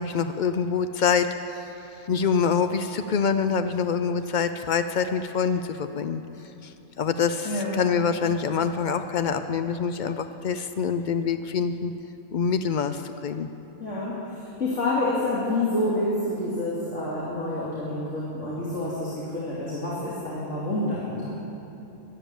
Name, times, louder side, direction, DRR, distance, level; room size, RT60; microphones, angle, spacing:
voice 1, 0.0-6.2 6.6-11.9 12.3-13.5, left 6 dB, 90° left, 9 dB, 0.4 m, -26 dB
voice 2, 7.4-7.8 13.8-21.3, left 1 dB, 60° left, -7 dB, 2.8 m, -28 dB
12.5 x 12.0 x 9.1 m, 2.9 s
omnidirectional pair, 1.4 m